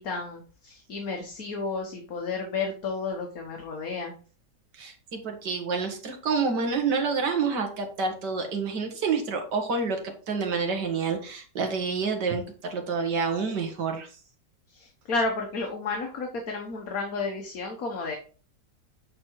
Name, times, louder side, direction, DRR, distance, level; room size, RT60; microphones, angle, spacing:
voice 1, 0.0-4.1 14.7-18.2, left 3 dB, 60° left, 2 dB, 1.6 m, -32 dB
voice 2, 4.7-12.4 12.7-14.1, right 5 dB, 80° right, 4 dB, 2.1 m, -28 dB
8.5 x 4.1 x 4.5 m, 0.38 s
omnidirectional pair, 1.8 m